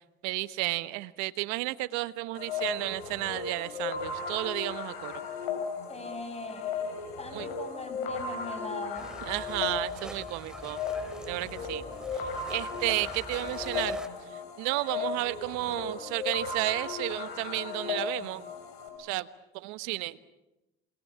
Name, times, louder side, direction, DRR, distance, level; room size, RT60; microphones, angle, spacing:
voice 1, 0.2-5.2 7.3-7.5 9.2-10.8 11.3-11.8 12.1-14.0 14.3-18.4 19.0-19.3 19.5-20.2, right 20 dB, 75° right, 15 dB, 1.2 m, -32 dB
sound 1, 2.3-18.9, left 5 dB, 85° left, 6.3 m, -36 dB
voice 2, 5.9-6.8 7.2-9.1 11.6-12.2, left 3 dB, 20° left, 7 dB, 7.5 m, -40 dB
sound 2, 8.9-14.1, right 1 dB, ahead, 2.4 m, -44 dB
28.5 x 21.5 x 8.5 m, 0.96 s
hypercardioid pair, 70°, 29 cm